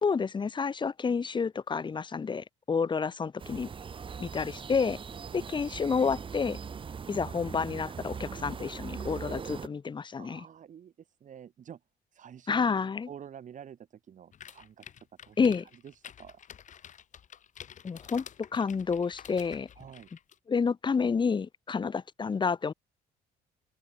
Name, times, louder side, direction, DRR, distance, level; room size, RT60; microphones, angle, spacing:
voice 1, 0.0-3.7 4.2-5.0 5.3-6.6 7.1-10.5 12.5-13.1 15.4-15.7 17.8-18.3 18.5-19.7 20.5-22.7, left 5 dB, 25° left, 1.6 m, -29 dB
sound 1, 3.4-9.7, right 6 dB, 30° right, 1.3 m, -40 dB
voice 2, 10.2-10.9 11.2-11.8 12.1-13.8 14.1-14.8 15.3-15.4 16.2-16.4 19.8-20.1, right 9 dB, 50° right, 6.6 m, -48 dB
sound 2, 14.3-20.4, left 9 dB, 45° left, 2.5 m, -49 dB
open air
cardioid pair, 110°, 17 cm